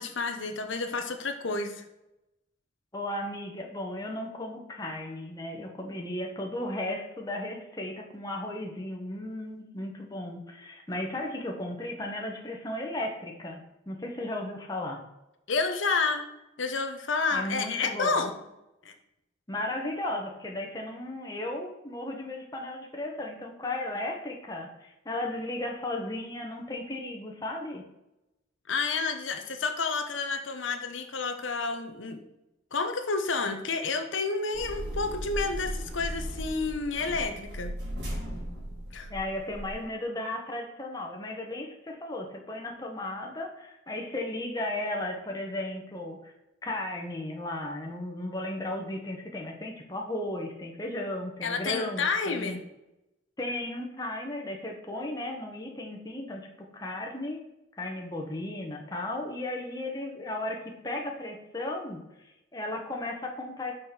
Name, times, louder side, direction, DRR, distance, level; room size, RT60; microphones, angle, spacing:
voice 1, 0.0-1.8 15.5-16.2 16.6-18.4 18.8-18.9 28.7-32.2 32.7-37.7 38.9-39.1 51.4-52.6, left 4 dB, 80° left, 6 dB, 0.9 m, -30 dB
voice 2, 2.9-13.6 13.9-15.0 17.3-18.3 19.5-27.8 39.1-46.3 46.6-52.6 53.4-57.4 57.7-63.7, left 1 dB, 20° left, 1 dB, 1.2 m, -35 dB
sound 1, 34.5-39.8, equal, 60° right, 3.2 m, -37 dB
6.3 x 5.2 x 5.9 m, 0.92 s
head